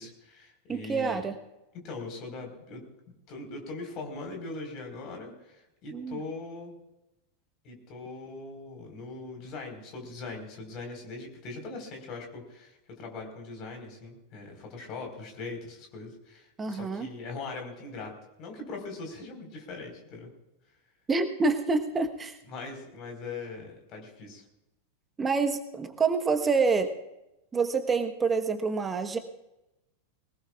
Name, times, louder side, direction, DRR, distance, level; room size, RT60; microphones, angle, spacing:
voice 1, 0.0-1.2 1.8-2.8 3.3-6.8 7.6-18.1 18.4-20.3 22.5-24.4, left 3 dB, 40° left, 3 dB, 4.7 m, -41 dB
voice 2, 0.7-1.3 5.9-6.2 16.6-17.1 21.1-22.4 25.2-26.9 27.5-29.2, right 4 dB, 15° right, 7 dB, 1.3 m, -27 dB
22.5 x 19.5 x 2.5 m, 0.93 s
figure-of-eight pair, 90°, 0 cm